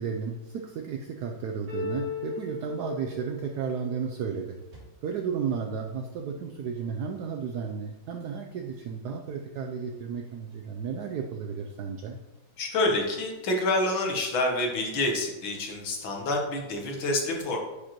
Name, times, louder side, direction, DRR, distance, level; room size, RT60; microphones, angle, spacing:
voice 1, 0.0-4.6 5.0-12.2, right 6 dB, 80° right, 4 dB, 0.9 m, -33 dB
sound 1, 1.7-4.8, left 3 dB, 50° right, 2.6 m, -36 dB
voice 2, 12.6-17.6, left 2 dB, 75° left, 1 dB, 1.9 m, -27 dB
9.8 x 5.0 x 3.0 m, 1.1 s
omnidirectional pair, 2.2 m